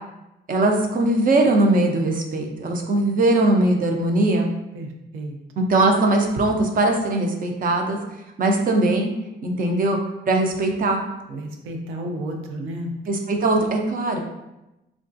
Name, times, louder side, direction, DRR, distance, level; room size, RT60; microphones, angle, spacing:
voice 1, 0.5-4.5 5.7-8.0 8.4-9.1 9.4-10.0 10.3-11.0 13.1-14.2, right 2 dB, 45° right, 2 dB, 0.5 m, -20 dB
voice 2, 4.7-5.4 11.3-12.9, right 1 dB, 90° right, 3 dB, 0.5 m, -32 dB
3.5 x 2.3 x 2.5 m, 0.96 s
cardioid pair, 90°, 20 cm